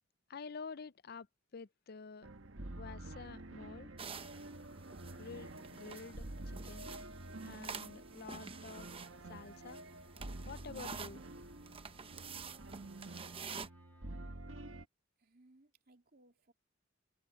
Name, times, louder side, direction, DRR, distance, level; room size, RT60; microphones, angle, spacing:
voice 1, 0.3-1.3 1.5-2.3 2.7-3.9 5.1-6.3 6.6-6.9 7.4-8.9 9.3-9.8 10.5-11.2, left 5 dB, 55° left, 0.5 m, -49 dB
sound 1, 2.2-14.8, right 1 dB, 90° right, 1.5 m, -49 dB
Wind instrument woodwind instrument, 2.9-14.5, left 1 dB, 10° left, 5.8 m, -73 dB
sound 2, 4.0-13.7, right 5 dB, 30° right, 0.9 m, -49 dB
voice 2, 15.2-16.5, right 2 dB, 50° right, 2.9 m, -66 dB
head